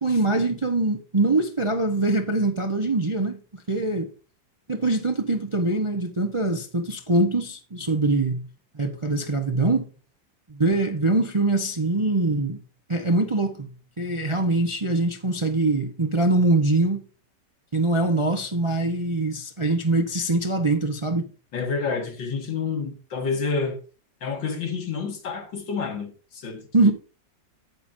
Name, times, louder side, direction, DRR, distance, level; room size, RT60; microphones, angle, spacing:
voice 1, 0.0-4.1 4.7-8.5 8.7-9.9 10.5-12.6 12.9-13.7 14.0-17.0 17.7-21.3 26.7-26.9, right 2 dB, 30° right, 0.5 m, -23 dB
voice 2, 21.5-23.8 24.2-26.9, left 5 dB, 85° left, 2.6 m, -29 dB
12.0 x 8.7 x 2.6 m
omnidirectional pair, 2.0 m